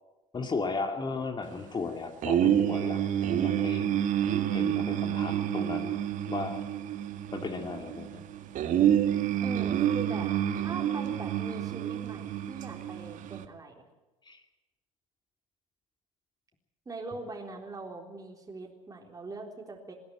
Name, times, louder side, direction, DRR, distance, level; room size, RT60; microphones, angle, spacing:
voice 1, 0.3-3.0 3.4-3.9 4.5-6.0 6.3-6.5 7.3-8.2 14.3-14.4, left 4 dB, 25° left, 5 dB, 2.5 m, -35 dB
sound 1, 2.2-13.4, right 10 dB, 50° right, 1.7 m, -28 dB
voice 2, 9.4-13.8 16.9-19.9, right 3 dB, 20° right, 0 dB, 3.9 m, -42 dB
21.5 x 15.5 x 9.2 m, 1.1 s
hypercardioid pair, 70°, 17 cm